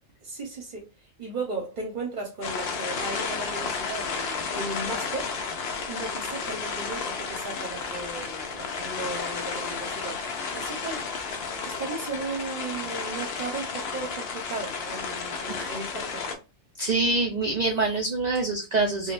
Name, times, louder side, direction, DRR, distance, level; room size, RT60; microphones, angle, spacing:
voice 1, 0.2-5.3 5.9-11.0 11.6-16.2, right 3 dB, 45° right, 0 dB, 0.8 m, -36 dB
sound 1, 2.4-16.4, left 5 dB, 60° left, 0.7 m, -32 dB
voice 2, 15.5-15.9 16.8-19.1, right 3 dB, 70° right, 2 dB, 0.4 m, -26 dB
3.5 x 2.3 x 2.4 m, 0.28 s
omnidirectional pair, 1.3 m